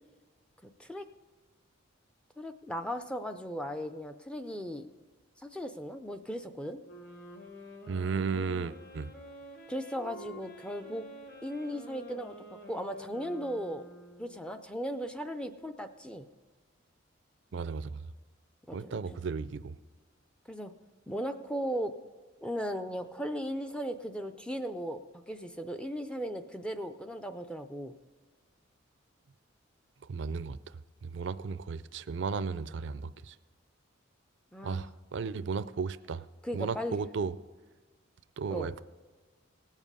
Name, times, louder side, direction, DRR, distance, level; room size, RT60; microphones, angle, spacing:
voice 1, 0.6-1.1 2.4-4.9 5.4-6.8 9.7-11.1 11.4-12.4 12.7-13.8 14.2-16.3 18.7-19.2 20.5-20.7 21.1-21.9 22.4-27.9 34.5-34.9 36.4-37.0 38.5-38.7, equal, 5° left, 7 dB, 0.4 m, -37 dB
sound 1, 6.8-14.5, equal, 50° left, 1.4 m, -49 dB
voice 2, 7.9-9.1 17.5-18.0 18.7-19.7 30.1-30.6 31.0-33.3 34.6-36.3 36.5-37.3 38.4-38.8, right 5 dB, 60° right, 15 dB, 0.4 m, -34 dB
18.5 x 7.3 x 5.5 m, 1.3 s
head